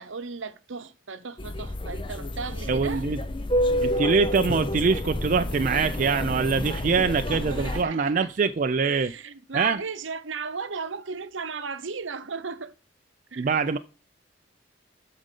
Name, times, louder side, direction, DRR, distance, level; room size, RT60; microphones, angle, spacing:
voice 1, 0.0-3.0 7.2-8.3 8.8-12.7 13.3-13.6, right 5 dB, 75° right, 0.8 m, -36 dB
sound 1, 1.4-7.8, left 1 dB, 25° left, 0.7 m, -29 dB
voice 2, 2.7-3.2 3.8-9.1 9.5-9.8 13.4-13.8, right 5 dB, 40° right, 0.4 m, -24 dB
13.0 x 5.0 x 3.8 m
head